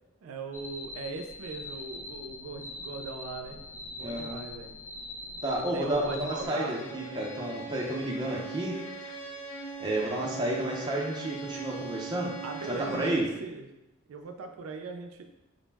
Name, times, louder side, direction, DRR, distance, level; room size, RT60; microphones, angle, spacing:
voice 1, 0.2-3.6 3.9-4.7 5.6-7.3 12.4-13.7 14.1-15.2, right 4 dB, 90° right, 5 dB, 0.4 m, -39 dB
sound 1, 0.5-6.5, left 2 dB, 40° left, 0.7 m, -42 dB
voice 2, 4.0-4.5 5.4-8.8 9.8-12.3 12.7-13.3, right 1 dB, 20° right, -3 dB, 0.5 m, -31 dB
Bowed string instrument, 6.4-13.3, right 4 dB, 85° left, 0.6 m, -40 dB
3.8 x 2.0 x 3.3 m, 0.99 s
head